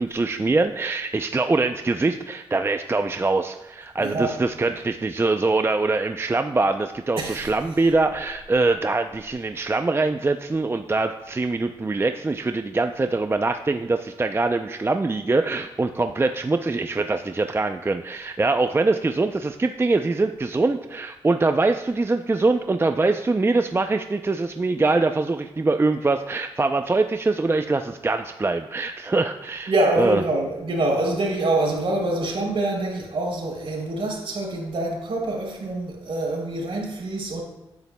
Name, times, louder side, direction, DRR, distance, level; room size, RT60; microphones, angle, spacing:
voice 1, 0.0-29.7 30.0-30.2, right 3 dB, 25° right, 7 dB, 0.5 m, -23 dB
voice 2, 4.0-4.4 7.2-7.8 29.7-37.4, right 2 dB, 60° right, 0 dB, 3.3 m, -25 dB
10.5 x 9.7 x 2.2 m, 0.94 s
cardioid pair, 55°, 10 cm